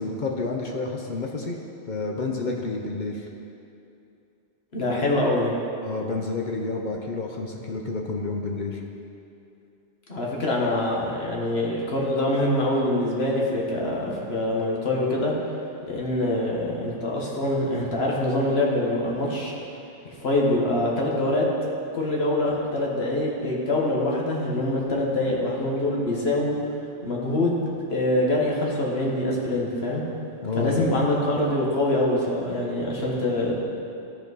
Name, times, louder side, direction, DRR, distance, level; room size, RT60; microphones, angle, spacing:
voice 1, 0.0-1.6 1.9-3.3 4.9-5.2 5.8-8.8 30.4-30.9, left 3 dB, 50° left, 1 dB, 0.7 m, -29 dB
voice 2, 4.7-5.5 10.1-15.3 15.9-19.5 20.2-21.4 21.9-26.6 27.0-30.0 30.6-33.6, left 1 dB, 65° left, -3 dB, 1.5 m, -24 dB
13.5 x 4.5 x 4.0 m, 2.7 s
omnidirectional pair, 1.1 m